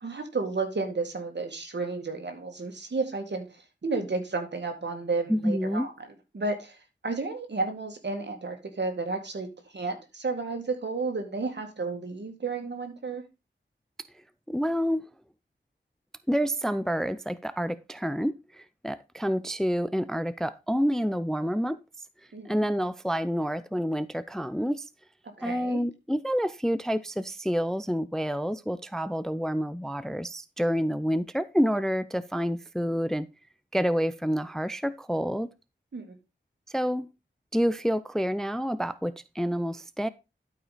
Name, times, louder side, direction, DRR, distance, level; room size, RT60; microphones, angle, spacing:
voice 1, 0.0-5.9 6.3-13.2 22.3-22.5 25.4-25.8 35.9-36.2, right 3 dB, 65° right, 2.0 m, -32 dB
voice 2, 5.3-5.9 14.5-15.0 16.3-21.8 22.4-24.9 25.4-33.3 33.7-35.5 36.7-37.1 37.5-40.1, equal, ahead, 0.4 m, -28 dB
12.0 x 5.0 x 4.1 m
wide cardioid pair, 95°, 20 cm